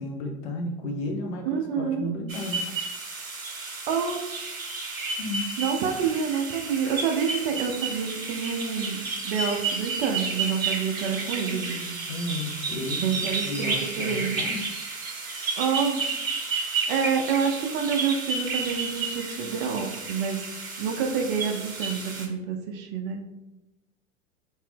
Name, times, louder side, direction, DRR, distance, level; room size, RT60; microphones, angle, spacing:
voice 1, 0.0-2.7 5.2-5.5 12.1-14.6, left 1 dB, 50° left, 2 dB, 0.8 m, -33 dB
voice 2, 1.4-2.1 3.9-4.2 5.6-11.9 13.0-14.4 15.6-16.0 16.9-20.4 20.8-23.2, right 6 dB, 45° right, 3 dB, 0.5 m, -28 dB
sound 1, 2.3-22.3, right 4 dB, 90° right, 0.9 m, -32 dB
2.8 x 2.6 x 3.4 m, 0.95 s
hypercardioid pair, 95°, 40 cm